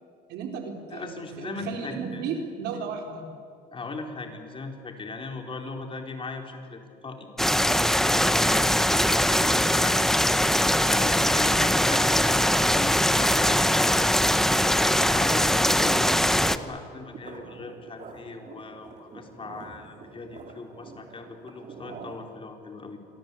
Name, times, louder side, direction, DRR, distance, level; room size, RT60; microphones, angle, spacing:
voice 1, 0.3-3.2, right 5 dB, 90° right, 3 dB, 4.2 m, -34 dB
voice 2, 0.9-2.2 3.7-7.3 8.0-10.1 10.8-14.0 14.8-23.0, left 3 dB, 30° left, 3 dB, 4.1 m, -38 dB
sound 1, 7.4-16.6, equal, ahead, 0.9 m, -22 dB
sound 2, 15.3-22.4, right 4 dB, 50° right, 4.8 m, -46 dB
27.5 x 23.5 x 8.5 m, 2.3 s
cardioid pair, 110°, 17 cm